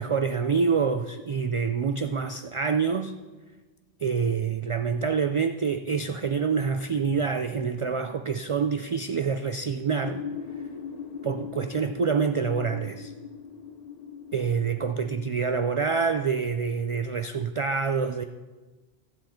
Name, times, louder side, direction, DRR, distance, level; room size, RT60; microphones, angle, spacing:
voice 1, 0.0-3.1 4.0-10.2 11.2-13.1 14.3-18.2, right 5 dB, 50° right, 8 dB, 0.3 m, -26 dB
sound 1, 10.0-15.3, left 6 dB, 45° left, 0.7 m, -39 dB
15.0 x 8.0 x 4.3 m, 1.2 s
omnidirectional pair, 1.0 m